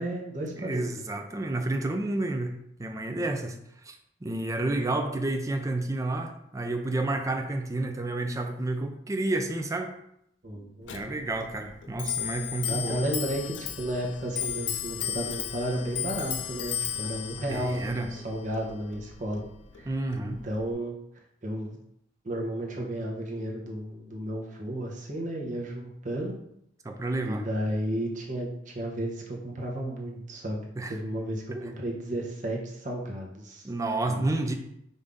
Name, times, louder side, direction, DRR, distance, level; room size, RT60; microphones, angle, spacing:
voice 1, 0.0-0.8 10.4-11.1 12.7-17.8 18.1-19.4 19.8-19.9 20.2-21.0 21.4-21.8 22.2-26.3 27.2-33.6 34.1-34.3, right 1 dB, 45° right, -1 dB, 0.9 m, -33 dB
voice 2, 0.6-3.6 3.8-4.0 4.2-9.9 10.9-13.0 17.5-18.1 19.9-20.4 26.8-27.4 30.8-31.0 31.5-31.7 33.6-34.5, right 2 dB, 20° right, 5 dB, 0.4 m, -30 dB
Clock, 10.8-20.7, left 9 dB, 90° left, 0.5 m, -35 dB
5.2 x 2.7 x 3.5 m, 0.76 s
head